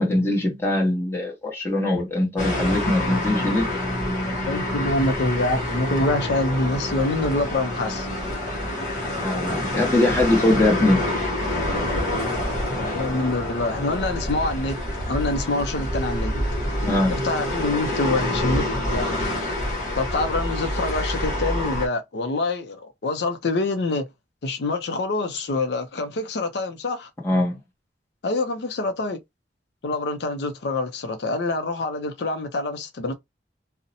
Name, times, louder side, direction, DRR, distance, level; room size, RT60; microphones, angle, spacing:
voice 1, 0.0-3.7 9.1-11.1 16.9-17.1 27.2-27.6, left 1 dB, 15° left, 0.9 m, -22 dB
sound 1, 2.4-21.9, left 1 dB, 45° left, 0.9 m, -27 dB
voice 2, 3.0-3.6 4.4-8.1 12.8-16.3 17.1-18.6 18.9-19.1 19.9-24.1 24.4-27.1 28.2-29.2 29.8-33.1, left 2 dB, 70° left, 0.5 m, -26 dB
2.6 x 2.0 x 2.7 m
head